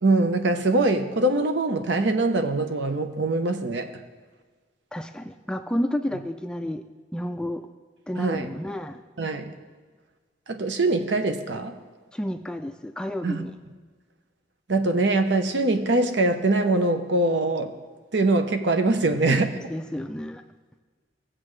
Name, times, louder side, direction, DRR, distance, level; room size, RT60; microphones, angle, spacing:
voice 1, 0.0-3.9 8.2-8.5 9.2-9.6 10.5-11.7 13.2-13.5 14.7-17.7 18.1-19.5, right 2 dB, 70° right, 7 dB, 0.8 m, -23 dB
voice 2, 4.9-6.8 7.1-7.7 8.1-9.0 12.1-13.5 19.0-20.4, left 1 dB, 5° left, 7 dB, 0.3 m, -31 dB
17.5 x 7.5 x 3.2 m, 1.4 s
head